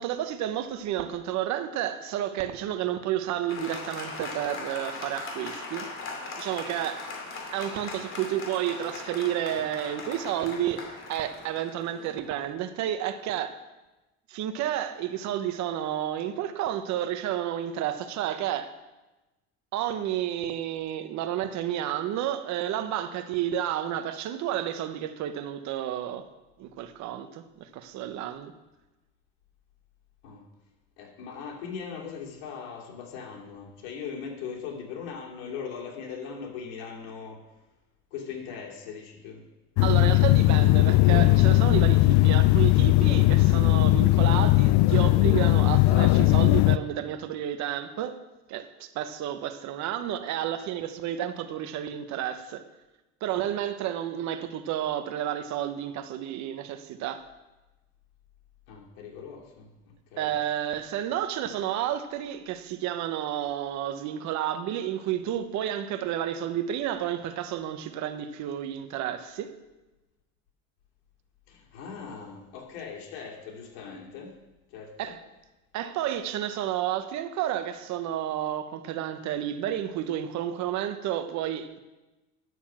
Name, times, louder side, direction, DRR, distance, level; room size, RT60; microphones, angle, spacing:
voice 1, 0.0-5.9 6.4-7.1 7.5-13.6 14.3-18.7 19.7-26.3 26.6-28.5 39.8-48.2 48.5-52.6 53.2-57.3 60.2-69.5 75.0-75.2 75.7-81.8, right 11 dB, 60° right, 1.0 m, -31 dB
Applause, 3.5-12.5, left 3 dB, 40° left, 2.6 m, -39 dB
voice 2, 31.0-37.4 38.1-39.4 58.7-60.3 71.5-74.4 74.7-75.1, left 6 dB, 90° left, 2.8 m, -40 dB
sound 1, 39.8-46.8, left 18 dB, 65° left, 0.4 m, -19 dB
11.0 x 7.0 x 7.3 m
cardioid pair, 130°, 32 cm